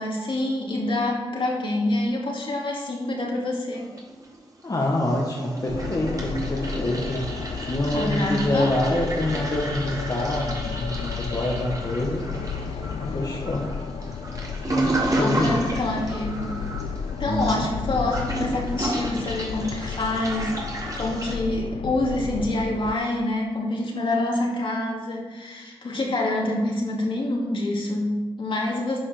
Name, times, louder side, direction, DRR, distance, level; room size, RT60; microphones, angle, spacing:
voice 1, 0.0-3.9 7.9-8.7 15.2-16.6 17.1-29.0, left 1 dB, 60° left, -2 dB, 2.3 m, -26 dB
Toilet flush, 3.7-4.6 4.9-21.3, right 2 dB, 40° right, 2.4 m, -32 dB
voice 2, 4.6-7.3 7.6-12.3 13.0-13.7 14.7-15.6 17.3-17.7 17.9-18.0, left 1 dB, 40° left, -3 dB, 1.5 m, -26 dB
sound 1, 5.7-22.9, left 6 dB, 80° left, 0.4 m, -33 dB
10.5 x 5.5 x 5.0 m, 1.2 s
cardioid pair, 45°, 10 cm